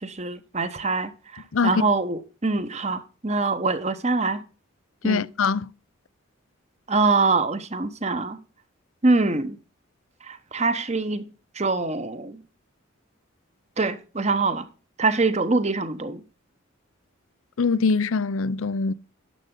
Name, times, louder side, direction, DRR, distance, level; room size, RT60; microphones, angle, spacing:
voice 1, 0.0-4.4 5.0-5.3 6.9-8.4 9.0-9.6 10.2-11.3 11.5-12.4 13.8-14.7 15.0-16.2, right 3 dB, 35° right, 1.1 m, -24 dB
voice 2, 1.5-1.8 5.0-5.7 17.6-18.9, left 4 dB, 80° left, 0.5 m, -23 dB
11.5 x 7.8 x 3.8 m
head